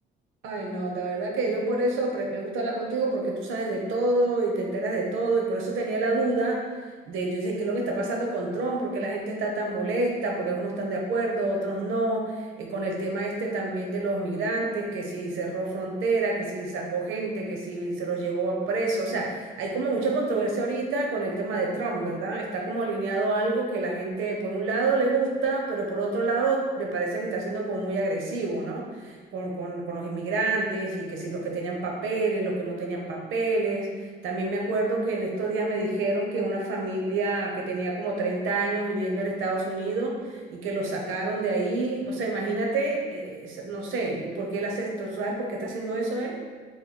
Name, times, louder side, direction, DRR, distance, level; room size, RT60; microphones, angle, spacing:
voice 1, 0.4-6.6 7.1-33.9 34.2-46.4, right 2 dB, 85° right, 0 dB, 0.7 m, -28 dB
2.9 x 2.2 x 4.1 m, 1.5 s
cardioid pair, 90°, 20 cm